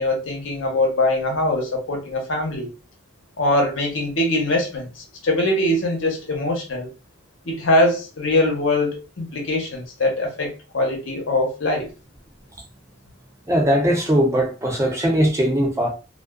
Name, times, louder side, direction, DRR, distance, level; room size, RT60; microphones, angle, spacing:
voice 1, 0.0-2.7 3.4-6.9 7.4-11.9, left 1 dB, 75° left, 0.9 m, -22 dB
voice 2, 13.5-15.9, equal, 15° right, 0.5 m, -19 dB
2.3 x 2.3 x 2.2 m
head